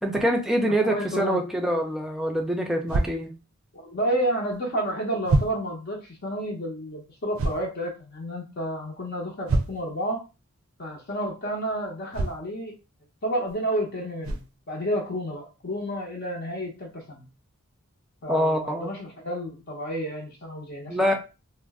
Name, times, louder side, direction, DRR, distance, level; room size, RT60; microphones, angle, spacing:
voice 1, 0.0-3.3 18.3-18.9 20.9-21.1, equal, ahead, 1 dB, 0.4 m, -25 dB
voice 2, 0.8-1.5 3.7-10.2 10.8-12.7 13.2-17.3 18.2-21.1, right 1 dB, 50° left, -1 dB, 0.7 m, -30 dB
sound 1, 2.9-3.1 4.5-4.6 5.2-5.6 7.3-7.7 9.5-9.9 12.1-12.4 13.5-13.6 14.2-14.5, right 2 dB, 80° right, 0.4 m, -25 dB
2.4 x 2.0 x 3.4 m, 0.30 s
head